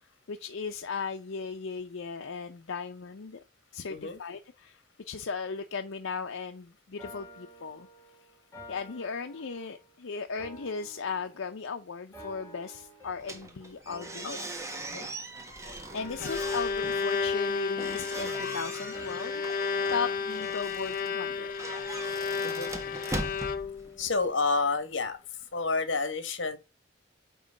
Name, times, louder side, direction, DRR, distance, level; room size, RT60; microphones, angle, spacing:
voice 1, 0.3-3.4 3.7-7.9 8.7-14.4 15.7-19.6 19.9-21.5, left 5 dB, 90° left, 0.6 m, -37 dB
sound 1, 7.0-9.9 10.4-11.7 12.1-13.5 13.9-15.6 16.0-20.7, equal, 15° left, 1.9 m, -50 dB
sound 2, 13.2-24.3, right 2 dB, 15° right, 1.1 m, -41 dB
Bowed string instrument, 15.9-24.0, left 5 dB, 45° left, 0.6 m, -32 dB
voice 2, 24.0-26.6, left 3 dB, 70° left, 1.3 m, -30 dB
9.2 x 3.1 x 6.3 m
head